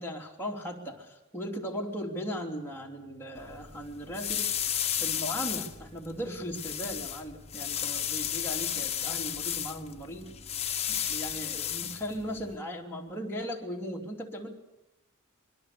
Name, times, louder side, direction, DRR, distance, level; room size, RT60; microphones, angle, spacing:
voice 1, 0.0-4.5 5.0-10.3 10.8-14.5, equal, 10° left, -2 dB, 3.2 m, -37 dB
sound 1, 3.3-12.6, left 9 dB, 30° left, 1.3 m, -34 dB
26.0 x 22.5 x 6.9 m, 0.94 s
head